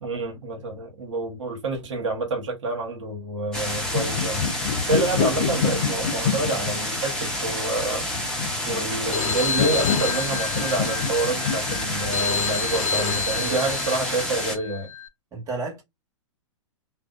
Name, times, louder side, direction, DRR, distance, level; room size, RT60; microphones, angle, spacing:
voice 1, 0.0-4.4 4.8-8.1 8.6-14.9, right 3 dB, 70° right, 1.0 m, -28 dB
sound 1, 3.5-14.6, left 1 dB, 5° left, 0.8 m, -29 dB
sound 2, 3.6-13.3, left 7 dB, 55° left, 0.7 m, -28 dB
Telephone, 9.1-15.1, left 6 dB, 90° left, 0.4 m, -29 dB
voice 2, 13.3-13.8 15.3-15.8, right 3 dB, 20° right, 1.2 m, -33 dB
2.6 x 2.1 x 2.3 m
hypercardioid pair, 115°, 16 cm